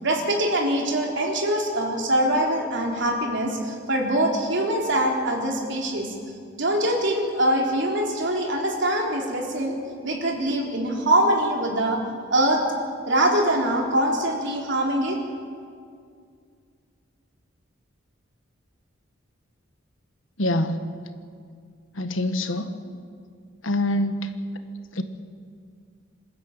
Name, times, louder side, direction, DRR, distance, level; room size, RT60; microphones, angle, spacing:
voice 1, 0.0-6.1 6.6-9.8 10.0-12.0 12.3-12.6 13.0-15.2, right 1 dB, 65° right, 1 dB, 3.7 m, -23 dB
voice 2, 20.4-20.8 21.9-22.7 23.6-24.3 24.9-25.0, left 1 dB, 80° left, 8 dB, 1.5 m, -25 dB
26.5 x 13.0 x 8.9 m, 2.2 s
head